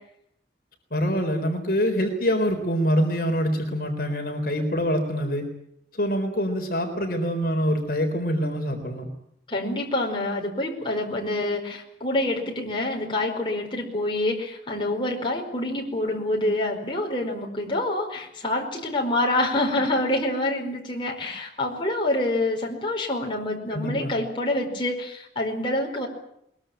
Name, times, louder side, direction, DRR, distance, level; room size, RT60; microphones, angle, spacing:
voice 1, 0.9-5.4 5.9-9.1 23.7-24.1, equal, 50° left, 3 dB, 3.9 m, -25 dB
voice 2, 9.5-26.1, left 1 dB, 25° left, 0 dB, 4.8 m, -26 dB
22.5 x 21.5 x 9.0 m, 0.74 s
head